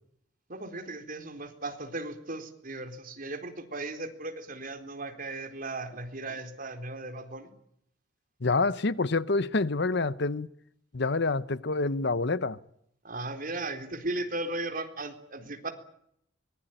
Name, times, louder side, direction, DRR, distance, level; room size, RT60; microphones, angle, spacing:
voice 1, 0.5-7.5 13.0-15.7, right 2 dB, 50° right, 4.0 m, -36 dB
voice 2, 8.4-10.5 10.9-12.6, left 3 dB, 65° left, 0.9 m, -27 dB
24.0 x 21.0 x 9.1 m
head